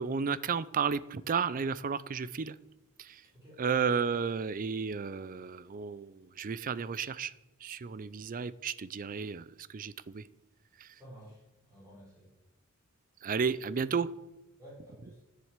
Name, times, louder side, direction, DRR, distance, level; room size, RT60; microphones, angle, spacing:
voice 1, 0.0-2.5 3.0-3.2 3.6-7.3 7.6-10.2 10.8-10.9 13.2-14.1 15.0-15.1, right 6 dB, 40° right, 18 dB, 0.4 m, -33 dB
voice 2, 10.9-12.3 14.6-15.2, equal, 15° right, -5 dB, 4.7 m, -52 dB
10.5 x 7.6 x 8.1 m, 1.0 s
head